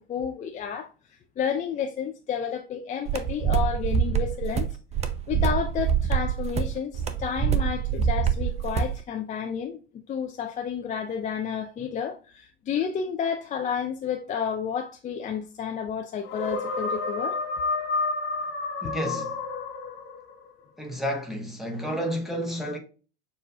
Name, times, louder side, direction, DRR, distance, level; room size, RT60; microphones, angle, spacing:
voice 1, 0.1-0.9 1.4-4.7 5.3-17.4, left 7 dB, 25° left, 0.5 m, -31 dB
sound 1, 3.1-9.0, right 8 dB, 20° right, 0.6 m, -25 dB
sound 2, 16.2-20.3, left 3 dB, 40° left, 1.3 m, -30 dB
voice 2, 18.8-19.4 20.8-22.8, equal, ahead, 1.1 m, -31 dB
6.6 x 2.6 x 2.3 m
hypercardioid pair, 85°, 30 cm